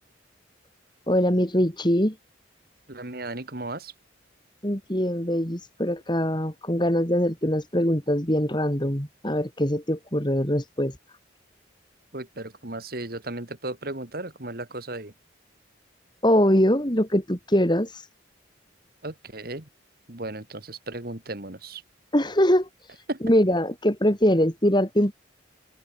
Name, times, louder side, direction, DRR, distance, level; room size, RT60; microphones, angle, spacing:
voice 1, 1.1-2.1 4.6-10.9 16.2-17.9 22.1-22.7 23.2-25.1, equal, 20° left, 3.4 m, -22 dB
voice 2, 2.9-3.9 12.1-15.1 19.0-19.6 20.1-21.8 23.1-23.2, right 2 dB, 50° right, 2.1 m, -35 dB
open air
head